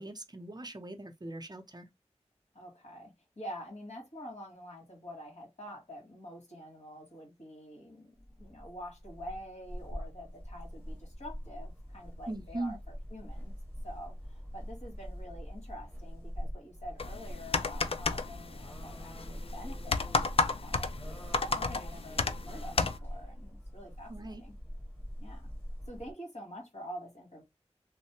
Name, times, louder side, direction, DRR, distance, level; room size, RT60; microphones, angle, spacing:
voice 1, 0.0-1.9 12.3-12.8 24.1-24.4, right 2 dB, 35° right, 0.6 m, -40 dB
voice 2, 2.5-12.8 13.1-13.6 13.8-21.2 21.6-24.6 25.2-25.5 25.9-27.4, equal, 70° left, 1.9 m, -47 dB
sound 1, 8.2-26.1, equal, 15° left, 1.3 m, -44 dB
sound 2, 17.0-23.0, left 3 dB, 55° left, 0.4 m, -33 dB
3.1 x 2.1 x 2.9 m
wide cardioid pair, 50°, 11 cm